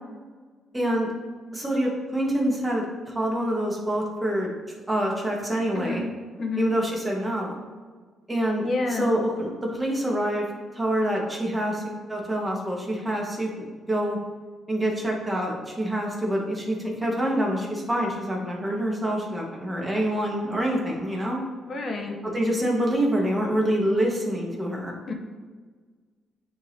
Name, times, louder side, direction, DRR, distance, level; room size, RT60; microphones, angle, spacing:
voice 1, 0.7-1.1 1.5-4.5 4.9-6.0 6.6-7.5 8.3-10.4 10.7-14.2 14.7-21.4 22.3-24.9, right 1 dB, 15° right, -1 dB, 1.5 m, -26 dB
voice 2, 6.4-6.7 8.6-9.1 21.7-22.2 25.1-25.2, left 3 dB, 50° left, 3 dB, 0.9 m, -28 dB
9.4 x 3.6 x 2.8 m, 1.5 s
cardioid pair, 90°, 0 cm